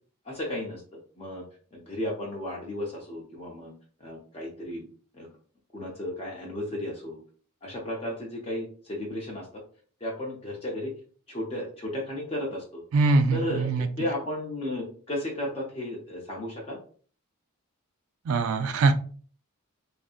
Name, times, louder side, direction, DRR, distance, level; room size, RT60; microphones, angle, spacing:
voice 1, 0.3-0.8 1.2-1.4 1.7-3.7 4.0-4.9 5.1-5.3 5.7-7.2 7.6-9.5 10.0-10.9 11.3-12.8 13.3-13.7 14.0-16.8, left 1 dB, 25° left, -2 dB, 0.5 m, -34 dB
voice 2, 12.9-13.9 18.3-18.9, right 3 dB, 65° right, 8 dB, 0.3 m, -22 dB
2.6 x 2.5 x 2.4 m, 0.44 s
head